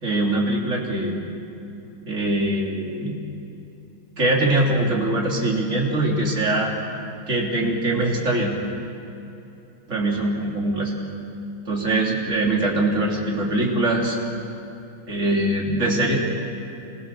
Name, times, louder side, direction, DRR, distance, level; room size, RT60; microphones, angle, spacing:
voice 1, 0.0-1.2 2.1-3.2 4.2-6.7 7.3-8.6 9.9-10.9 11.7-14.2 15.1-16.2, right 2 dB, 35° right, -3 dB, 3.8 m, -22 dB
26.5 x 22.0 x 7.1 m, 2.9 s
omnidirectional pair, 2.3 m